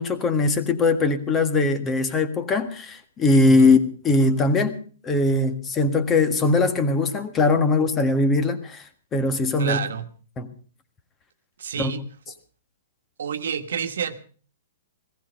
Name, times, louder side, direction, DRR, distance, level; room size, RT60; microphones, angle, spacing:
voice 1, 0.0-3.8 4.0-4.8 5.0-8.8 9.1-9.8 10.4-10.5 11.8-11.9, left 3 dB, 20° left, 9 dB, 1.7 m, -20 dB
voice 2, 3.4-3.8 9.6-10.1 11.6-12.3 13.2-14.2, right 7 dB, 75° right, 9 dB, 1.4 m, -30 dB
16.5 x 15.0 x 5.2 m, 0.41 s
hypercardioid pair, 140°, 0 cm